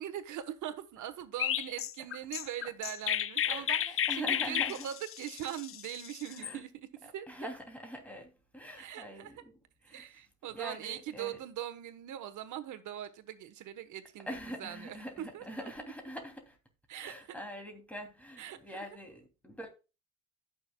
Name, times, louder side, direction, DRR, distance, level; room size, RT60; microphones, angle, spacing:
voice 1, 0.0-6.7 7.0-7.5 8.8-9.4 9.9-14.3 14.6-15.7 16.9-17.4 18.4-18.8, right 11 dB, 80° right, 1.3 m, -41 dB
Chirp tweet, 1.4-6.5, left 10 dB, 45° left, 0.5 m, -33 dB
voice 2, 4.1-4.9 6.3-6.6 7.0-9.5 9.8-10.0 10.5-11.4 14.3-16.6 17.0-19.7, equal, 5° left, 2.8 m, -44 dB
16.0 x 6.3 x 2.3 m
cardioid pair, 90°, 30 cm